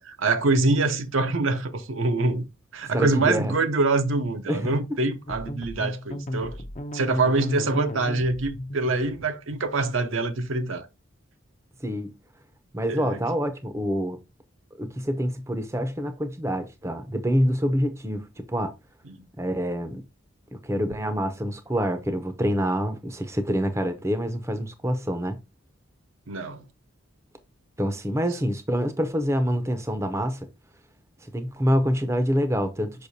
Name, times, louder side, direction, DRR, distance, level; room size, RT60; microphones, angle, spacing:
voice 1, 0.0-2.5 2.7-6.6 6.9-10.9 12.9-13.2 19.1-19.2 26.3-26.6, right 3 dB, 75° right, 0.7 m, -25 dB
voice 2, 2.9-3.5 4.5-4.8 11.8-12.1 12.7-14.2 14.8-18.7 19.4-20.0 20.5-25.4 27.8-30.4 31.3-33.1, equal, 15° right, 0.6 m, -26 dB
sound 1, 5.3-9.9, left 1 dB, 35° left, 0.6 m, -35 dB
6.6 x 5.4 x 2.7 m
head